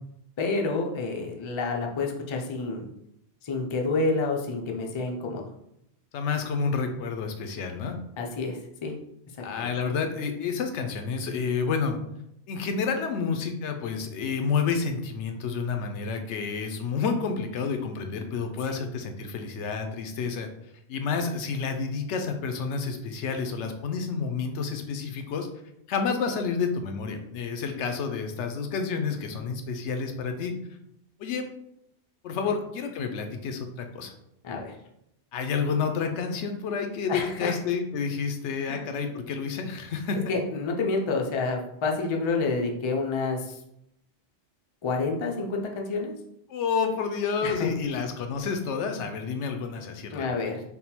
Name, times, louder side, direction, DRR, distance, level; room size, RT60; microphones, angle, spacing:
voice 1, 0.4-2.9 3.4-5.4 8.2-8.9 9.6-9.7 34.4-34.7 37.1-37.6 38.7-38.9 40.3-43.6 44.8-46.1 47.4-47.7 50.1-50.6, left 3 dB, 45° left, 1 dB, 0.4 m, -29 dB
voice 2, 6.1-8.0 9.4-12.0 12.5-20.5 20.9-25.5 25.9-30.5 31.2-31.5 32.2-34.1 35.3-40.3 46.5-50.5, left 5 dB, 85° left, 6 dB, 0.9 m, -29 dB
3.5 x 2.2 x 4.3 m, 0.80 s
omnidirectional pair, 1.1 m